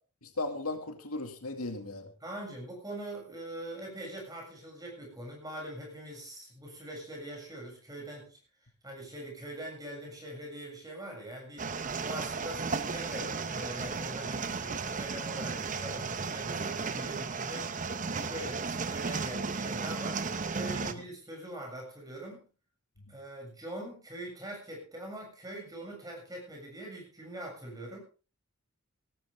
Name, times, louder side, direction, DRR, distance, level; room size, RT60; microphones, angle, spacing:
voice 1, 0.2-2.1 20.8-21.0, left 2 dB, 80° left, 6 dB, 2.3 m, -37 dB
voice 2, 2.2-8.4 8.8-11.7 12.0-17.7 18.2-20.2 20.5-22.4 23.1-28.0, right 1 dB, 15° right, 0 dB, 7.3 m, -42 dB
sound 1, 11.6-20.9, right 4 dB, 35° right, 0.9 m, -34 dB
17.5 x 14.0 x 3.5 m, 0.35 s
head